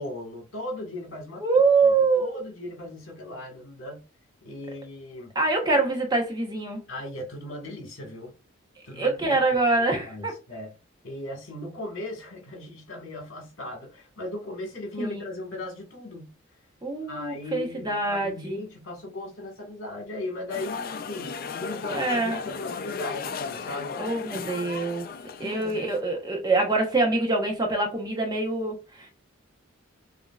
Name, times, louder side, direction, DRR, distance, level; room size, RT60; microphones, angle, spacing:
voice 1, 0.0-1.4 1.8-4.1 4.4-5.3 6.9-8.3 8.8-9.4 10.0-10.7 11.0-16.3 17.1-24.0 25.4-25.8, left 1 dB, 70° left, 1.8 m, -37 dB
voice 2, 1.4-2.4 5.3-6.8 9.0-10.3 15.0-15.3 16.8-18.6 21.9-22.4 24.0-25.1 25.4-29.1, right 3 dB, 20° right, 1.0 m, -25 dB
sound 1, 20.5-26.0, left 5 dB, 45° left, 0.4 m, -35 dB
6.3 x 2.8 x 2.4 m
head